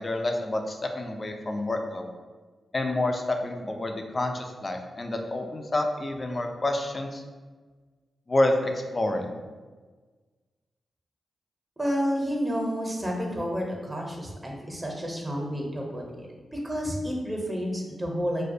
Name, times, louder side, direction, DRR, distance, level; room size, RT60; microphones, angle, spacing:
voice 1, 0.0-2.1 2.7-7.2 8.3-9.3, left 1 dB, 40° left, 4 dB, 0.3 m, -28 dB
voice 2, 11.8-18.4, equal, 20° right, 0 dB, 0.6 m, -30 dB
2.3 x 2.1 x 2.6 m, 1.4 s
supercardioid pair, 40°, 0 cm